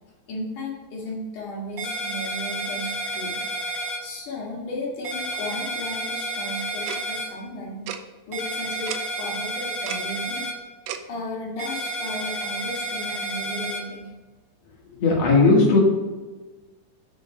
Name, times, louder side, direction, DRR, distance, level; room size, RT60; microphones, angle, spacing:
voice 1, 0.3-3.4 4.0-7.8 8.3-10.5 11.0-14.1, left 1 dB, 65° left, -3 dB, 3.6 m, -35 dB
sound 1, 1.8-4.0 5.0-7.2 8.3-10.5 11.6-13.8, right 1 dB, 40° right, 4.3 m, -30 dB
Tick-tock, 6.9-7.0 7.9-8.0 8.9-9.0 9.9-10.0 10.9-11.0, right 10 dB, 85° right, 2.3 m, -32 dB
voice 2, 14.9-15.8, left 3 dB, 50° left, -3 dB, 3.1 m, -17 dB
8.4 x 6.2 x 5.2 m, 1.2 s
omnidirectional pair, 3.9 m